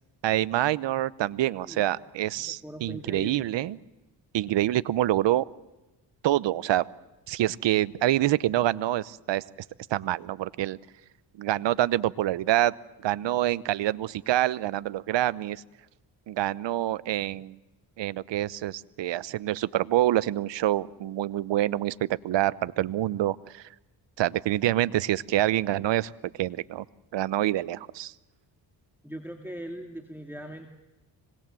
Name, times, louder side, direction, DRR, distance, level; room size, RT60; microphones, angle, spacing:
voice 1, 0.2-3.8 4.3-5.5 6.2-6.9 7.3-9.4 9.9-10.8 11.4-12.7 13.0-15.6 16.3-17.6 18.0-23.6 24.2-26.1 26.4-26.8 27.1-28.1, right 14 dB, 70° right, 19 dB, 0.9 m, -26 dB
voice 2, 2.4-3.5 29.0-30.7, right 1 dB, 5° right, 4 dB, 2.4 m, -40 dB
26.0 x 20.5 x 7.6 m, 1.0 s
cardioid pair, 75°, 45 cm